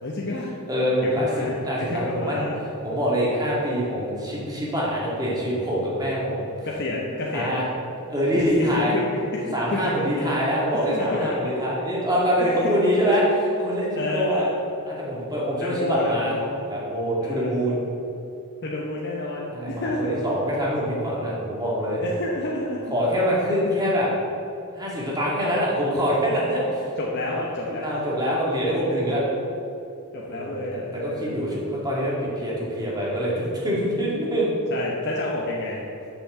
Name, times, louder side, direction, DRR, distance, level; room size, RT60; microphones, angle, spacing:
voice 1, 0.0-0.5 1.0-2.6 6.6-7.6 8.3-10.4 10.9-11.6 12.4-12.7 14.0-14.6 15.6-16.6 17.2-17.7 18.6-20.2 21.9-23.0 27.0-28.1 30.1-31.4 34.7-35.8, left 2 dB, 50° left, -4 dB, 0.9 m, -30 dB
voice 2, 0.7-2.4 2.8-6.5 7.3-7.6 8.1-8.9 9.5-14.5 15.0-16.3 16.7-17.8 19.5-22.0 22.9-24.1 24.8-26.8 27.7-29.2 30.3-34.5, equal, 20° right, -5 dB, 2.1 m, -24 dB
7.0 x 5.8 x 6.7 m, 2.7 s
head